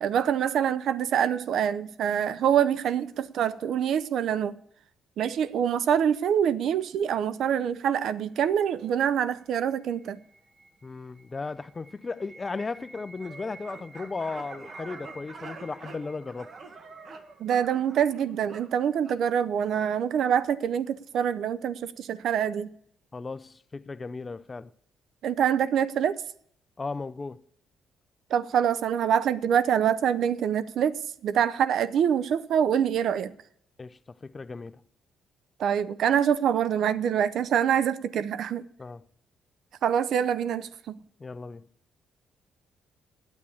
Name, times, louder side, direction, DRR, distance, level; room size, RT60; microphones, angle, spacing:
voice 1, 0.0-4.5 5.2-10.2 17.4-22.7 25.2-26.2 28.3-33.3 35.6-38.6 39.8-41.0, right 8 dB, 70° right, 0.5 m, -25 dB
sound 1, 9.4-18.1, right 2 dB, 20° right, 2.0 m, -52 dB
voice 2, 10.8-16.5 23.1-24.7 26.8-27.4 33.8-34.8 38.8-39.1 41.2-41.7, left 4 dB, 30° left, 0.5 m, -36 dB
sound 2, 13.2-19.2, right 4 dB, 50° right, 1.6 m, -46 dB
9.8 x 8.4 x 8.5 m
cardioid pair, 90°, 0 cm